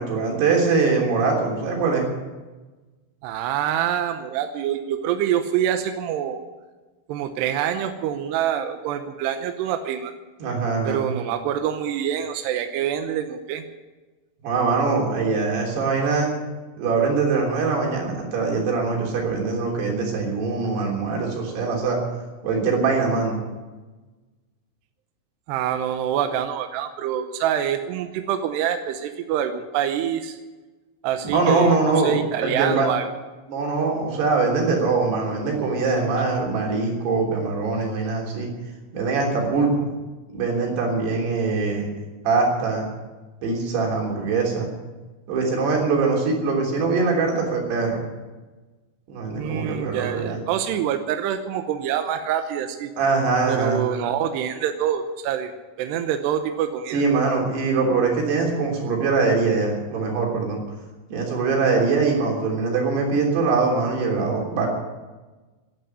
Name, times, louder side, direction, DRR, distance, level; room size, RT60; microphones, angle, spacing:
voice 1, 0.0-2.1 10.4-11.0 14.4-16.3 16.8-22.0 22.4-23.4 31.2-32.1 32.4-32.9 33.5-38.5 38.9-39.9 40.3-41.9 42.3-42.9 43.4-44.7 45.3-48.0 49.1-50.4 53.0-53.8 56.9-60.6 61.1-64.7, right 4 dB, 55° right, 0 dB, 5.1 m, -22 dB
voice 2, 3.2-6.4 7.1-10.1 10.8-13.6 25.5-30.4 31.0-31.8 32.0-33.1 49.4-52.9 53.5-55.5 55.8-57.0, right 9 dB, 75° right, 7 dB, 2.5 m, -26 dB
12.0 x 11.5 x 9.8 m, 1.2 s
omnidirectional pair, 5.7 m